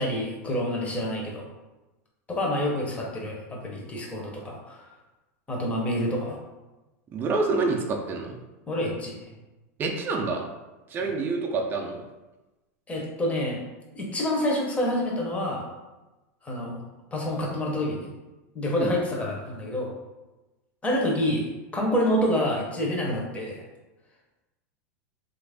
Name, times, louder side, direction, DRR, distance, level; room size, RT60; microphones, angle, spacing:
voice 1, 0.0-1.4 2.3-4.9 5.5-6.4 8.7-9.1 11.0-11.1 12.9-13.6 13.9-15.6 16.4-16.8 17.1-18.1 18.5-19.9 20.8-21.4 21.7-23.6, left 1 dB, 15° left, -2 dB, 0.7 m, -27 dB
voice 2, 7.1-8.4 9.8-10.4 10.9-12.0 18.8-18.9, right 3 dB, 25° right, 1 dB, 0.4 m, -27 dB
3.0 x 2.5 x 3.4 m, 1.1 s
supercardioid pair, 130°, 8 cm